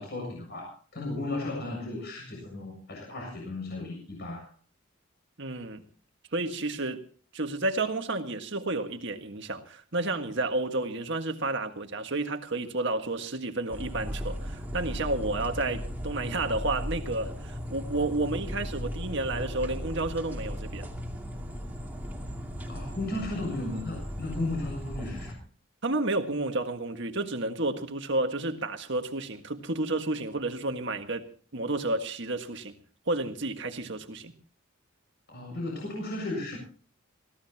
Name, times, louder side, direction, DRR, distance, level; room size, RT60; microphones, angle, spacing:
voice 1, 0.0-4.5 22.6-25.3 35.3-36.6, left 2 dB, 50° left, 7.3 m, -35 dB
voice 2, 5.4-5.8 6.3-7.0 7.3-20.9 25.8-31.3 31.5-32.7 33.1-34.3, right 2 dB, 55° right, 1.7 m, -31 dB
sound 1, 13.7-25.3, equal, 10° right, 2.5 m, -37 dB
24.0 x 16.5 x 2.9 m
head